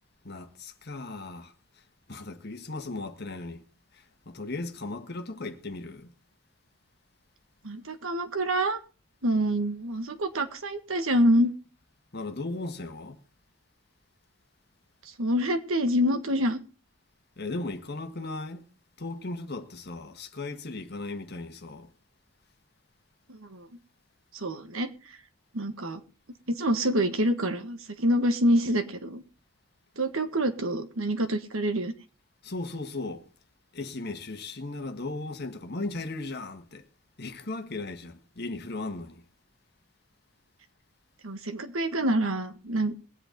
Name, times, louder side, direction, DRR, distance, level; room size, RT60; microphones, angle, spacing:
voice 1, 0.2-1.5 2.1-3.6 3.9-6.1 12.1-13.2 17.4-18.7 19.0-21.9 32.4-33.3 33.7-36.8 37.2-39.2, left 2 dB, 50° left, 1.6 m, -37 dB
voice 2, 7.6-8.8 9.2-11.5 15.2-16.6 23.3-23.7 24.3-24.9 25.5-26.0 26.5-29.2 30.0-31.9 41.2-42.9, equal, 75° right, 1.6 m, -26 dB
22.0 x 8.1 x 3.8 m
head